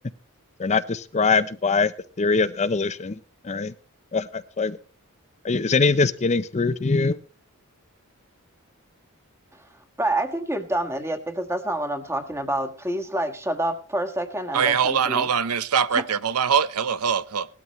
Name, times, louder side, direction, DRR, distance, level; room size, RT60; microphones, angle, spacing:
voice 1, 0.6-1.9 2.2-3.2 3.4-3.7 4.1-4.8 5.4-7.2, left 4 dB, 30° left, 0.6 m, -22 dB
voice 2, 10.0-15.3, right 1 dB, 10° right, 1.4 m, -27 dB
voice 3, 14.5-17.5, right 7 dB, 85° right, 0.7 m, -22 dB
18.0 x 12.5 x 3.1 m
head